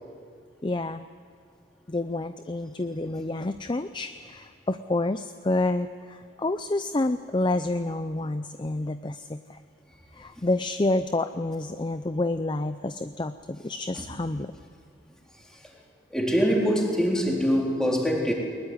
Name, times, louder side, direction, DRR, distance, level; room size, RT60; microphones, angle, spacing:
voice 1, 0.6-1.1 1.9-9.6 10.1-14.5, left 2 dB, 25° left, 10 dB, 0.5 m, -29 dB
voice 2, 16.1-18.3, equal, 5° left, -2 dB, 4.0 m, -24 dB
21.5 x 21.0 x 9.7 m, 2.4 s
head